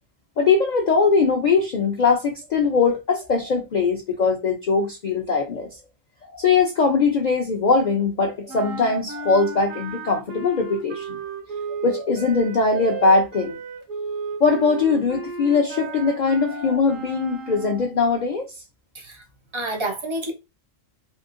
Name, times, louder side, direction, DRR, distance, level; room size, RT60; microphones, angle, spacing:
voice 1, 0.4-5.7 6.3-11.2 11.8-13.6 14.4-18.5, left 4 dB, 65° left, 0.4 m, -21 dB
sound 1, 8.5-18.0, right 4 dB, 85° right, 1.1 m, -34 dB
voice 2, 19.5-20.3, right 2 dB, 35° right, 0.5 m, -28 dB
3.0 x 2.6 x 2.5 m
omnidirectional pair, 1.3 m